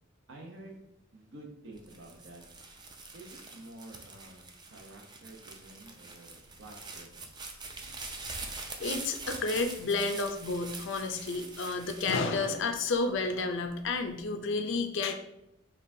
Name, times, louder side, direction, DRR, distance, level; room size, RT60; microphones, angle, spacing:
voice 1, 0.3-0.8 1.1-2.4 3.1-7.3, right 2 dB, 65° right, 1 dB, 0.8 m, -50 dB
sound 1, 1.8-13.1 13.7-14.2, right 3 dB, 20° right, 0.4 m, -44 dB
voice 2, 8.3-15.1, left 3 dB, 65° left, 6 dB, 0.5 m, -31 dB
5.3 x 2.3 x 2.7 m, 0.85 s
head